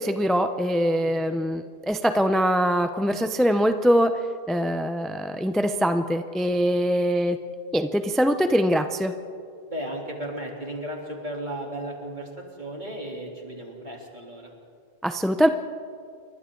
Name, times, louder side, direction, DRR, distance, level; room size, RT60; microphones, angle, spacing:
voice 1, 0.0-4.2 4.5-7.4 7.7-9.1 15.0-15.5, equal, ahead, 7 dB, 0.6 m, -23 dB
voice 2, 1.0-1.3 6.5-6.7 9.7-14.5, right 1 dB, 50° right, -1 dB, 3.5 m, -35 dB
29.5 x 23.5 x 3.9 m, 2.3 s
omnidirectional pair, 1.0 m